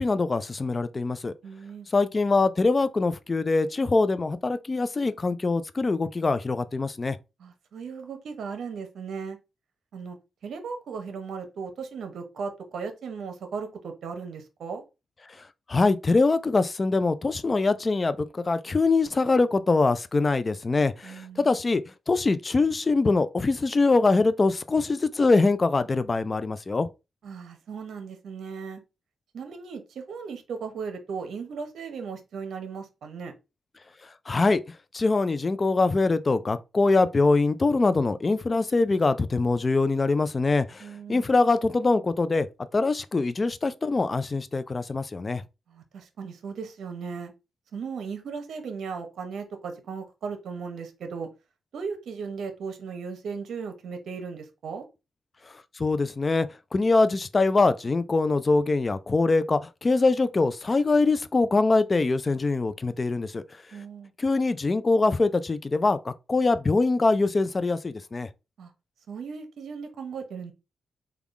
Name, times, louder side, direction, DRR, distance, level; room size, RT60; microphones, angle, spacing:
voice 1, 0.0-1.3 1.9-7.2 15.7-21.8 22.1-26.9 34.3-34.6 34.9-42.5 42.7-45.4 55.8-56.5 56.7-63.4 64.2-68.3, left 3 dB, 30° left, 0.3 m, -23 dB
voice 2, 1.4-1.9 7.4-9.4 9.9-10.2 10.4-14.8 21.0-21.5 27.2-28.8 29.3-33.3 40.8-41.3 45.7-47.3 47.7-51.3 51.7-54.9 63.7-64.1 68.6-68.7 69.1-70.5, right 5 dB, 75° right, 0.8 m, -36 dB
3.5 x 2.3 x 3.5 m
cardioid pair, 85°, 0 cm